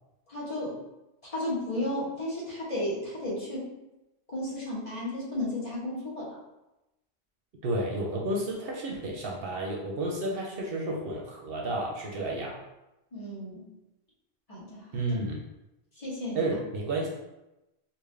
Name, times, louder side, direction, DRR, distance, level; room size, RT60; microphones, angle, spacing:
voice 1, 0.3-0.8 1.3-3.7 4.3-6.4 13.1-13.6 14.5-14.8 16.0-16.5, left 1 dB, 35° left, -8 dB, 1.3 m, -33 dB
voice 2, 7.6-12.6 14.9-15.4 16.3-17.2, right 1 dB, 65° right, -2 dB, 0.8 m, -31 dB
3.6 x 2.5 x 3.2 m, 0.95 s
omnidirectional pair, 1.1 m